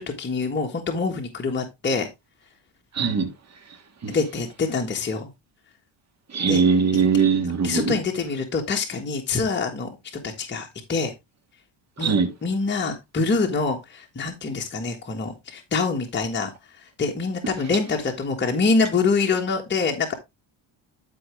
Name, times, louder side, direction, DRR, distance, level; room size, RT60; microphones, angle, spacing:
voice 1, 0.0-2.1 4.1-5.3 6.5-6.6 6.9-7.0 7.6-9.9 10.2-11.1 12.0-12.1 12.4-16.5 16.8-20.1, left 4 dB, 25° left, 1.5 m, -25 dB
voice 2, 3.0-3.3 4.0-4.2 6.3-7.9 12.0-12.3, right 5 dB, 35° right, 2.1 m, -20 dB
12.5 x 4.9 x 3.2 m
cardioid pair, 110°, 45 cm